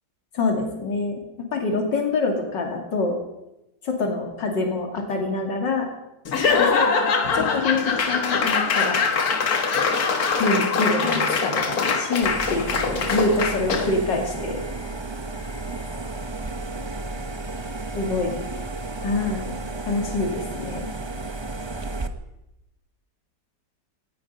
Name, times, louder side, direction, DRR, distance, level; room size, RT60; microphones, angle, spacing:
voice 1, 0.3-1.2 1.5-3.2 3.8-5.9 6.6-6.9 7.3-9.0 10.4-14.6 17.9-18.4 19.0-19.6 19.8-20.9, left 3 dB, 80° left, 2 dB, 3.2 m, -25 dB
Laughter / Applause / Crowd, 6.3-14.0, left 5 dB, 55° left, 1.9 m, -23 dB
sound 1, 12.2-22.1, right 2 dB, 30° right, 0.5 m, -33 dB
18.0 x 14.5 x 5.5 m, 0.91 s
omnidirectional pair, 1.9 m